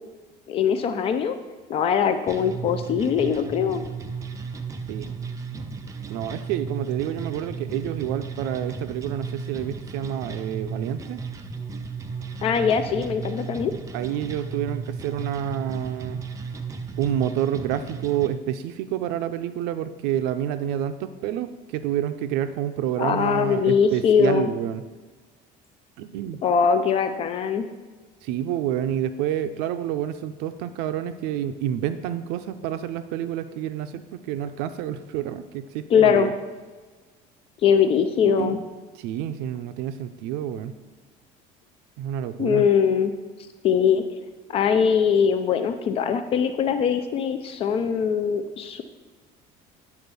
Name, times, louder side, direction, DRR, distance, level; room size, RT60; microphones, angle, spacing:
voice 1, 0.5-1.3 1.7-3.8 12.4-13.7 23.0-24.5 26.4-27.7 35.9-36.3 37.6-38.6 42.4-43.1 43.6-44.0 44.5-48.8, left 7 dB, 35° left, 9 dB, 0.4 m, -21 dB
sound 1, 2.3-18.3, right 5 dB, 20° right, 0.4 m, -34 dB
voice 2, 6.1-11.2 13.9-16.2 17.0-24.8 26.0-26.4 28.2-36.3 38.3-38.6 38.9-40.7 42.0-42.7, right 10 dB, 85° right, 10 dB, 0.5 m, -28 dB
9.7 x 4.4 x 6.8 m, 1.3 s
cardioid pair, 175°, 16 cm